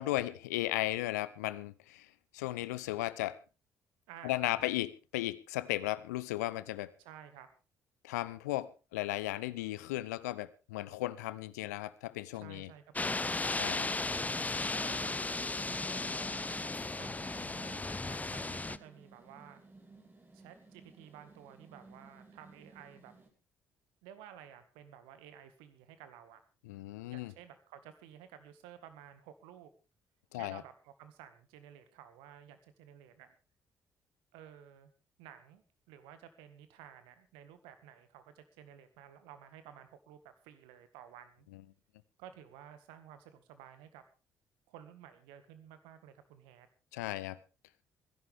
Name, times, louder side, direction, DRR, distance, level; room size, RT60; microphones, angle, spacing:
voice 1, 0.0-2.1 2.3-3.4 4.2-4.9 5.1-6.9 8.0-12.7 13.6-13.9 26.7-27.3 30.3-30.6 46.9-47.4, left 16 dB, 80° left, 0.7 m, -35 dB
voice 2, 4.1-4.6 7.0-7.5 12.3-13.3 14.8-15.3 15.7-16.7 16.9-19.6 20.3-23.1 24.0-26.4 27.1-29.7 30.3-33.3 34.3-34.9 35.2-41.5 42.2-44.0 44.7-46.7, right 10 dB, 70° right, 1.8 m, -53 dB
sound 1, 13.0-18.8, left 3 dB, 15° left, 0.7 m, -35 dB
sound 2, 16.0-23.3, right 3 dB, 25° right, 5.1 m, -59 dB
24.5 x 11.0 x 3.5 m
figure-of-eight pair, 45°, 9 cm